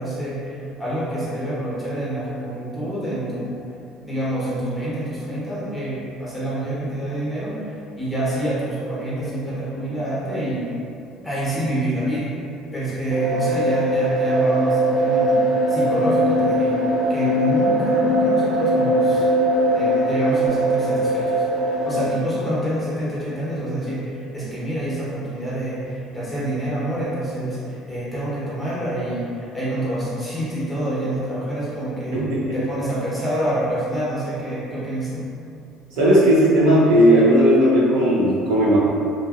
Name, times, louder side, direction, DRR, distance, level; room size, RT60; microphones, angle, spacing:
voice 1, 0.0-3.6 4.0-10.7 11.2-12.3 12.7-16.8 17.1-19.3 19.7-32.2 32.5-35.3, right 1 dB, 5° left, -9 dB, 1.0 m, -27 dB
sound 1, 13.1-22.0, right 1 dB, 45° right, 1.2 m, -20 dB
voice 2, 32.1-32.5 36.0-38.8, equal, 80° right, -6 dB, 0.8 m, -16 dB
2.7 x 2.7 x 2.4 m, 2.6 s
cardioid pair, 110°, 0 cm